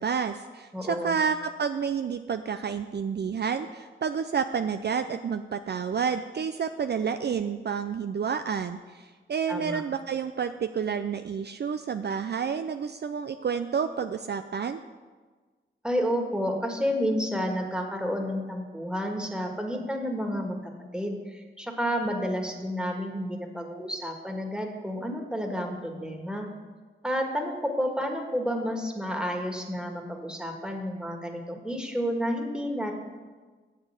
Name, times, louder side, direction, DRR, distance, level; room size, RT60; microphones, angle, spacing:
voice 1, 0.0-14.8, right 6 dB, 55° right, 9 dB, 0.4 m, -30 dB
voice 2, 0.7-1.2 9.5-9.8 15.8-20.6 20.9-26.5 27.0-32.9, equal, 5° right, 2 dB, 1.8 m, -30 dB
7.0 x 6.6 x 7.9 m, 1.4 s
cardioid pair, 45°, 21 cm